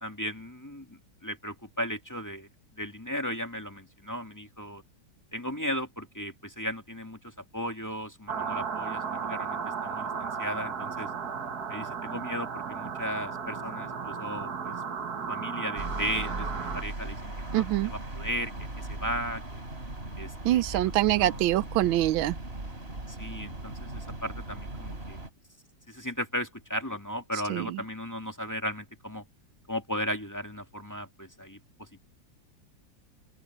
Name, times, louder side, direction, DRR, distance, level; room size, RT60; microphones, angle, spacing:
voice 1, 0.0-2.5 2.7-4.8 5.3-11.1 11.7-14.8 15.3-16.5 16.7-19.6 20.2-21.4 23.1-25.2 25.9-29.2 29.7-32.1, equal, 10° left, 2.0 m, -36 dB
sound 1, 8.3-16.8, right 6 dB, 55° right, 2.0 m, -35 dB
sound 2, 15.8-25.3, right 2 dB, 30° right, 4.2 m, -38 dB
voice 2, 17.5-17.9 20.4-22.4 27.5-27.8, right 15 dB, 90° right, 1.4 m, -25 dB
open air
omnidirectional pair, 2.1 m